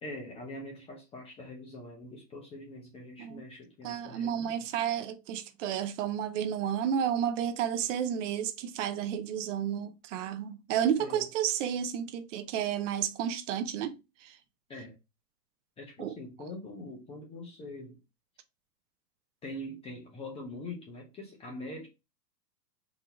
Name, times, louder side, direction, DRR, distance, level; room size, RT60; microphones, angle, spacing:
voice 1, 0.0-4.7 11.0-11.3 14.7-15.0 15.8-18.0 19.4-21.9, left 1 dB, 10° left, 0.6 m, -43 dB
voice 2, 3.8-13.9 14.2-14.4 16.0-16.1, right 9 dB, 50° right, 0.7 m, -31 dB
3.9 x 2.7 x 4.5 m
hypercardioid pair, 135°, 50 cm